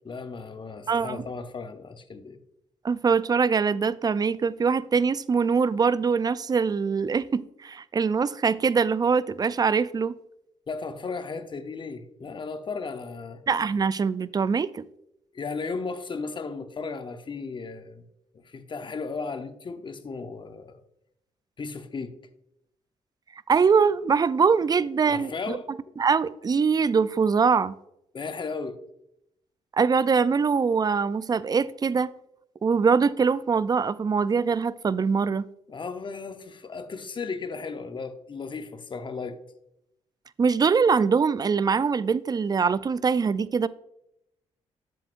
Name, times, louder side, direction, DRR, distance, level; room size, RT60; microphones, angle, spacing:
voice 1, 0.0-2.4 10.7-13.4 15.3-18.0 18.3-20.8 21.6-22.2 25.0-25.7 28.1-28.8 35.7-39.4, left 4 dB, 40° left, 0.8 m, -35 dB
voice 2, 0.9-1.2 2.8-10.1 13.5-14.8 23.5-25.6 26.0-27.8 29.7-32.1 32.6-35.5 40.4-43.7, right 5 dB, 30° right, 0.3 m, -23 dB
7.6 x 7.5 x 2.5 m
cardioid pair, 70°, 13 cm